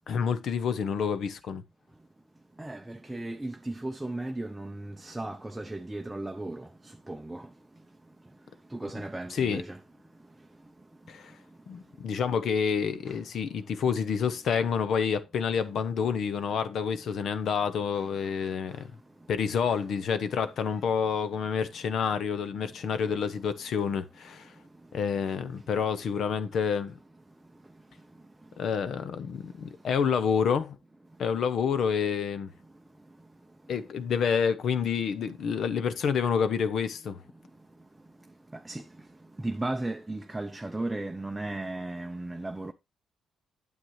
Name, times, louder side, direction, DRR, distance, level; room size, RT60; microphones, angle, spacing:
voice 1, 0.1-1.6 9.3-9.6 11.1-11.3 11.7-18.9 19.3-24.5 24.9-27.0 28.6-30.8 31.2-32.5 33.7-37.2, left 6 dB, 65° left, 0.9 m, -28 dB
voice 2, 2.6-7.5 8.7-9.8 10.4-10.7 13.1-13.2 15.4-15.5 18.0-18.8 19.6-19.8 20.7-20.9 22.7-23.2 24.8-24.9 25.2-25.3 25.5-25.7 27.7-27.8 28.1-28.5 31.2-31.3 32.6-32.7 33.0-33.2 33.6-33.8 38.3-42.7, right 2 dB, 10° right, 0.6 m, -37 dB
9.1 x 7.3 x 3.1 m
cardioid pair, 90°, 0 cm